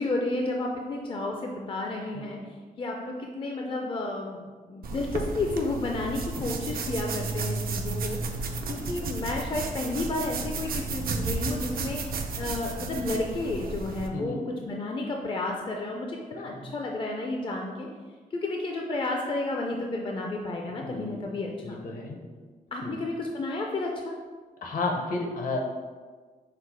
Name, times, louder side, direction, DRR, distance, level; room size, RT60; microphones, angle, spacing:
voice 1, 0.0-2.4 2.8-8.2 8.7-12.0 12.4-17.9 18.3-21.8 22.7-24.2, left 2 dB, 35° left, 1 dB, 0.4 m, -31 dB
sound 1, 4.8-14.1, right 3 dB, 75° right, 0.5 m, -33 dB
voice 2, 14.1-14.5 16.5-16.7 20.8-21.3 21.6-22.2 22.8-23.0 24.6-25.6, left 3 dB, 60° left, 2 dB, 0.8 m, -33 dB
5.6 x 2.1 x 4.5 m, 1.4 s
wide cardioid pair, 130°, 15 cm